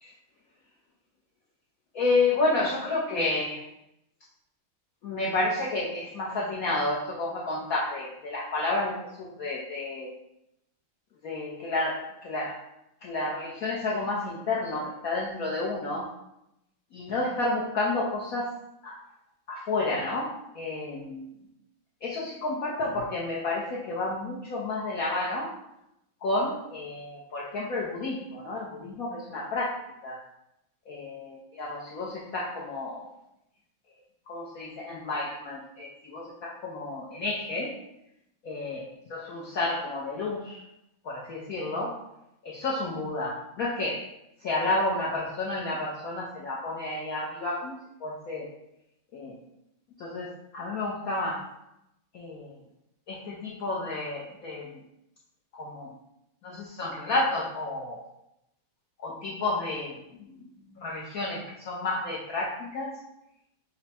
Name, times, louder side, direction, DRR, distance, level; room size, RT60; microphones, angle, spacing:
voice 1, 1.9-3.6 5.0-10.1 11.2-12.6 13.0-16.1 16.9-18.5 18.8-19.0 19.5-21.3 22.0-25.5 26.2-30.2 30.9-33.1 34.3-37.7 38.4-38.8 39.1-40.6 41.0-42.0 42.4-44.1 44.4-47.8 48.0-48.5 49.1-49.4 50.0-51.5 52.1-52.6 53.1-54.8 55.5-55.9 56.4-58.0 59.0-63.0, left 2 dB, 85° left, -4 dB, 0.7 m, -31 dB
5.6 x 2.0 x 4.2 m, 0.84 s
omnidirectional pair, 2.3 m